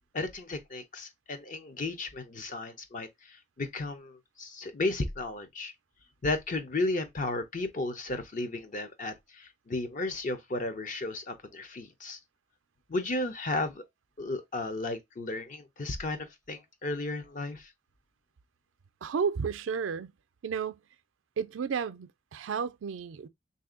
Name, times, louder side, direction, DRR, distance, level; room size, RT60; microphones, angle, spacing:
voice 1, 0.1-5.7 6.2-12.2 12.9-13.8 14.2-17.7, left 2 dB, 45° left, 0.6 m, -34 dB
voice 2, 19.0-20.1 20.4-20.8 21.4-23.3, right 6 dB, 85° right, 0.4 m, -32 dB
3.3 x 2.7 x 3.6 m
head